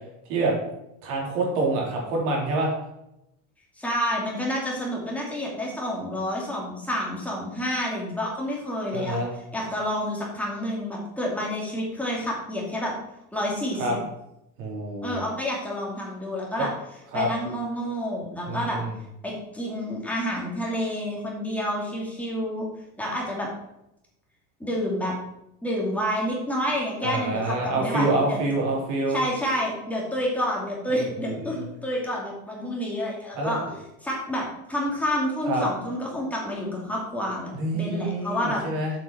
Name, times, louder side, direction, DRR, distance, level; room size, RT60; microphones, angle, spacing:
voice 1, 1.0-2.7 8.9-9.3 13.8-13.9 14.6-15.2 17.1-17.3 18.5-18.9 27.0-29.2 31.4-31.6 33.3-33.6 35.4-35.6 37.5-38.9, right 2 dB, 60° right, -1 dB, 3.6 m, -26 dB
voice 2, 3.8-9.2 9.5-12.9 13.3-13.9 15.0-16.7 17.1-18.8 19.2-22.7 23.0-23.5 24.6-25.1 25.6-28.4 29.1-33.6 34.0-38.6, equal, 5° left, -4 dB, 2.6 m, -29 dB
7.7 x 6.1 x 5.8 m, 0.86 s
cardioid pair, 150°, 34 cm